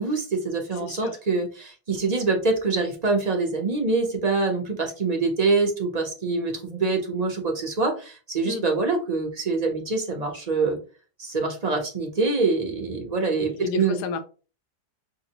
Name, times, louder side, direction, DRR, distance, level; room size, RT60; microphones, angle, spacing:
voice 1, 0.0-10.8 11.2-14.0, right 3 dB, 40° right, 0.5 m, -25 dB
voice 2, 0.8-1.2 8.4-8.6 13.5-14.2, left 5 dB, 80° left, 1.2 m, -32 dB
5.8 x 2.0 x 2.8 m
omnidirectional pair, 1.7 m